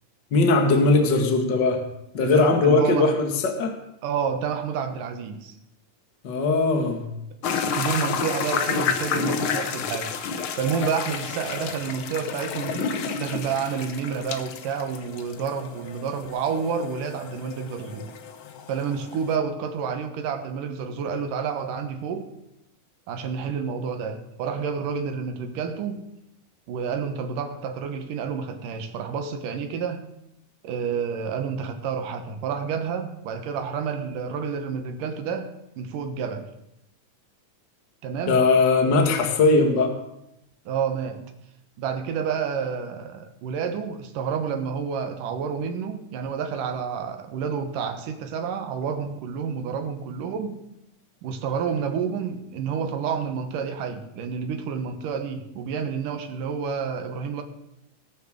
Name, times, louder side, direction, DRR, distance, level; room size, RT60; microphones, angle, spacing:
voice 1, 0.3-1.8 2.1-3.8 6.2-7.1 38.3-39.9, left 3 dB, 40° left, 4 dB, 1.9 m, -20 dB
voice 2, 2.2-3.2 4.0-5.6 7.7-10.1 10.5-18.1 18.7-22.3 23.1-26.0 26.7-30.0 30.6-36.5 38.0-38.4 40.7-41.3 41.8-50.6 51.2-57.4, right 6 dB, 80° right, 7 dB, 2.9 m, -29 dB
sound 1, 7.4-19.3, left 6 dB, 80° left, 1.1 m, -31 dB
19.0 x 6.8 x 6.5 m, 0.85 s
omnidirectional pair, 3.8 m